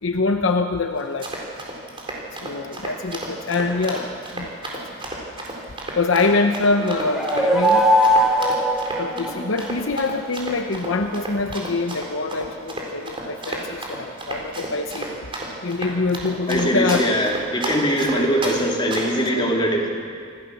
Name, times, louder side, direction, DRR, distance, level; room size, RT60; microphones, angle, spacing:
voice 1, 0.0-1.3 2.4-4.8 5.9-7.9 9.0-15.2 15.6-17.1 18.1-18.3 19.3-19.5, left 3 dB, 65° left, 6 dB, 0.9 m, -24 dB
Run, 1.0-18.6 18.9-19.2, right 2 dB, 25° right, 4.1 m, -32 dB
sound 1, 6.8-9.7, equal, ahead, 2.8 m, -20 dB
voice 2, 16.5-19.9, equal, 25° left, -1 dB, 3.3 m, -21 dB
26.5 x 15.5 x 7.2 m, 2.2 s
head